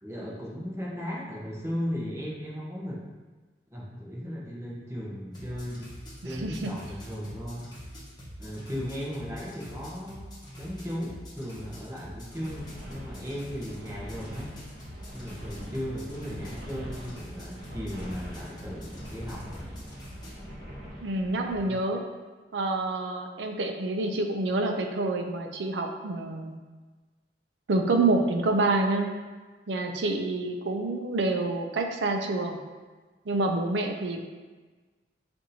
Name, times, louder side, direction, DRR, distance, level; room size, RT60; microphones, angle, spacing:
voice 1, 0.0-3.0 3.7-6.0 6.2-7.7 8.4-10.3 10.6-14.6 15.1-19.5, equal, 15° right, -5 dB, 0.8 m, -36 dB
sound 1, 5.3-20.3, equal, 25° left, 1.0 m, -45 dB
voice 2, 6.2-6.7 21.0-22.0 22.5-26.6 27.7-29.1 29.7-32.6 33.3-34.2, right 2 dB, 80° right, 4 dB, 0.5 m, -27 dB
sound 2, 12.3-21.6, equal, 45° right, 1.4 m, -43 dB
6.0 x 2.6 x 2.7 m, 1.3 s
head